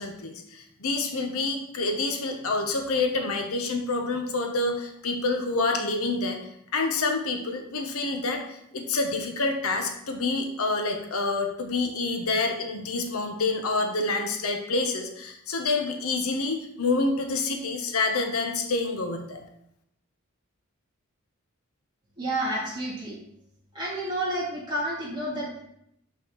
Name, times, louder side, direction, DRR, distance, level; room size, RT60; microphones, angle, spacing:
voice 1, 0.0-6.4 6.7-19.4, left 3 dB, 80° left, 4 dB, 0.9 m, -27 dB
voice 2, 22.2-23.2 23.7-25.6, right 1 dB, 20° right, -7 dB, 2.3 m, -30 dB
6.7 x 5.4 x 3.0 m, 0.76 s
head